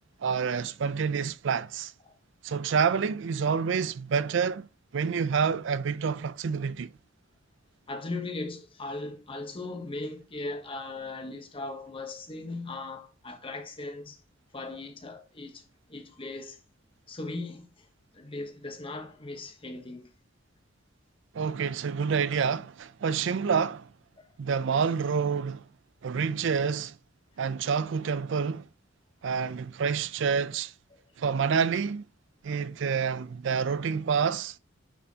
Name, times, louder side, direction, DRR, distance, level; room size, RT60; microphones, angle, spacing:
voice 1, 0.2-1.9 2.4-4.7 4.9-6.9 21.3-23.9 24.4-25.6 26.0-27.0 27.4-28.7 29.2-30.7 31.2-32.0 32.4-34.6, right 6 dB, 65° right, 0.4 m, -28 dB
voice 2, 7.9-14.2 14.5-15.6 15.9-16.6 17.1-17.9 18.1-20.1 24.2-24.3 30.9-31.0, left 2 dB, 30° left, 1.1 m, -38 dB
8.9 x 4.2 x 2.8 m
head